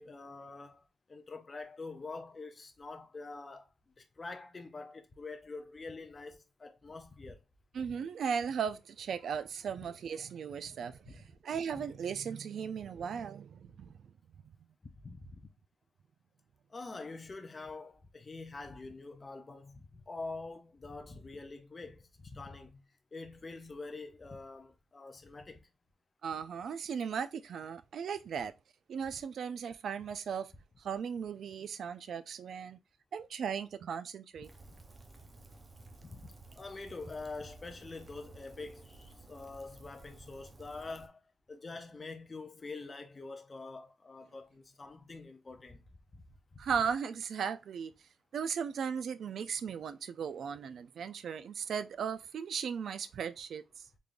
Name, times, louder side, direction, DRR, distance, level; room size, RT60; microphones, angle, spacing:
voice 1, 0.0-7.4 11.1-11.2 14.9-15.4 16.7-22.8 23.1-25.7 36.0-41.2 41.5-45.8 46.1-46.2 46.5-46.6, left 3 dB, 25° left, 0.5 m, -46 dB
voice 2, 7.7-14.0 14.4-14.5 26.2-28.5 28.9-30.5 30.8-32.8 33.1-34.5 46.6-47.9 48.3-53.8, right 7 dB, 55° right, 0.3 m, -37 dB
Rain, 34.4-41.1, right 2 dB, 20° right, 0.6 m, -54 dB
3.6 x 3.2 x 2.5 m
cardioid pair, 135°, 0 cm